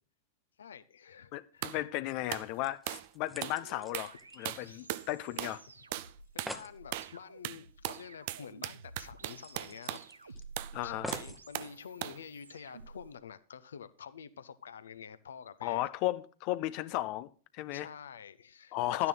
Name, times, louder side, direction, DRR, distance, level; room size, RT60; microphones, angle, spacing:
voice 1, 0.6-1.8 4.7-4.9 5.3-5.4 6.3-10.4 10.8-15.8 17.7-19.1, left 7 dB, 65° left, 0.8 m, -49 dB
voice 2, 1.3-5.6 10.7-11.2 15.6-17.9 18.7-19.1, left 15 dB, 45° left, 0.4 m, -35 dB
sound 1, 1.6-1.8 2.3-2.5 2.9-3.1 3.4-3.6 3.9-4.2 4.4-5.1 5.4-5.6 5.9-6.1 6.4-6.6 6.9-7.2 7.4-10.1 10.6-10.8 11.1-11.7 12.0-12.2, right 15 dB, 50° right, 0.5 m, -38 dB
sound 2, 2.6-5.3 5.5-5.6 6.0-6.1 6.2-6.8 8.3-8.4 8.7-8.8 9.4-10.4 11.0-11.4 12.2-12.3, equal, ahead, 1.0 m, -46 dB
sound 3, 3.4-13.1, right 3 dB, 75° right, 0.9 m, -53 dB
12.0 x 9.6 x 3.8 m
figure-of-eight pair, 90°, 0 cm